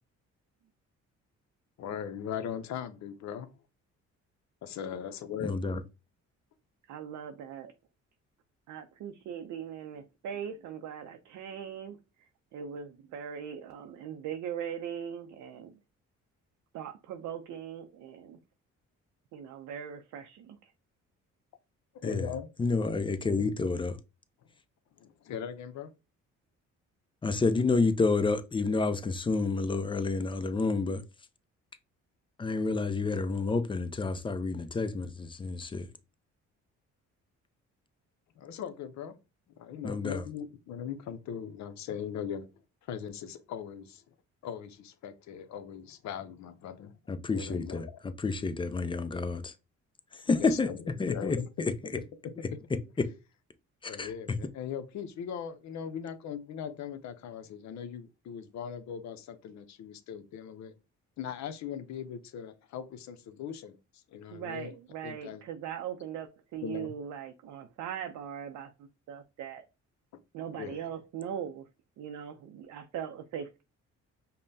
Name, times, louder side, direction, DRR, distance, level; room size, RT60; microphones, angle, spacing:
voice 1, 1.8-3.5 4.6-5.6 21.9-22.5 25.0-25.9 38.4-39.2 39.6-42.5 42.8-44.0 44.4-46.9 47.3-47.9 50.1-50.8 51.1-51.7 52.2-52.3 53.9-60.8 61.2-64.7 65.0-65.4 66.6-66.9 70.5-70.8, left 8 dB, 65° left, 0.6 m, -39 dB
voice 2, 5.4-5.8 22.0-22.3 22.6-24.0 27.2-31.0 32.4-35.9 39.8-40.2 47.1-47.9 48.2-49.5 50.1-50.7 51.0-51.7 53.0-53.1 53.8-54.1, left 3 dB, 15° left, 0.4 m, -29 dB
voice 3, 6.9-7.7 8.7-12.0 12.5-15.8 16.7-18.4 19.3-20.7 64.3-69.6 70.3-71.7 72.0-73.6, right 8 dB, 75° right, 0.5 m, -40 dB
5.2 x 2.1 x 2.6 m
cardioid pair, 90°, 30 cm